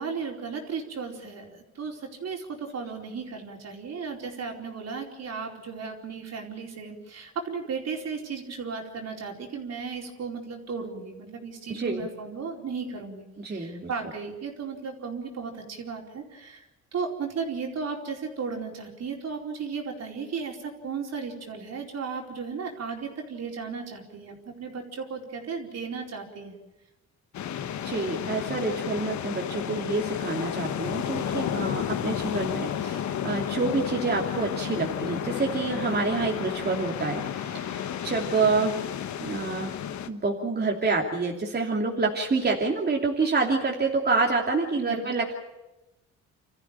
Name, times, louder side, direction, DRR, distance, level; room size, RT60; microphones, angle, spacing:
voice 1, 0.0-16.6 16.9-26.6 44.8-45.0, right 5 dB, 60° right, 1 dB, 4.5 m, -35 dB
voice 2, 11.7-12.1 13.4-13.9 27.8-38.9 39.2-39.7 40.1-45.3, right 3 dB, 35° right, -1 dB, 2.9 m, -27 dB
sound 1, 27.3-40.1, left 9 dB, 70° left, 1.4 m, -32 dB
27.0 x 14.0 x 9.0 m, 1.0 s
cardioid pair, 90°, 30 cm